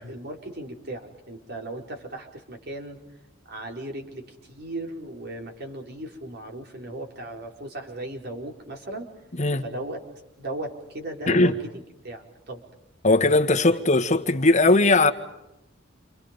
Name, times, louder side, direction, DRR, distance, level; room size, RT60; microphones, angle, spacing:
voice 1, 0.1-3.0 3.5-9.1 9.6-10.0 10.4-11.6 12.0-12.6, right 1 dB, 55° right, 4.7 m, -36 dB
voice 2, 13.0-15.1, left 2 dB, 35° left, 1.8 m, -19 dB
29.5 x 27.5 x 5.4 m
head